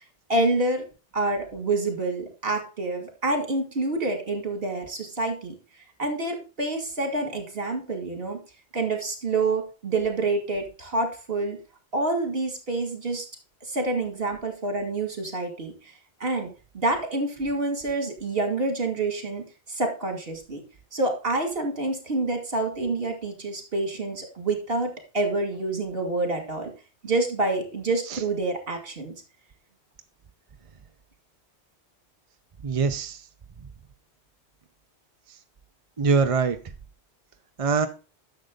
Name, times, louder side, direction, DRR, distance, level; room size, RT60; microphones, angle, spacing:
voice 1, 0.3-0.8 1.1-5.5 6.0-8.4 8.7-11.6 11.9-13.3 13.6-15.9 16.2-20.6 20.9-26.7 27.0-29.1, right 2 dB, 60° right, 5 dB, 2.4 m, -27 dB
voice 2, 32.6-33.2 36.0-36.6 37.6-37.9, right 5 dB, 35° right, 8 dB, 0.7 m, -23 dB
10.5 x 6.8 x 3.8 m, 0.33 s
omnidirectional pair, 1.1 m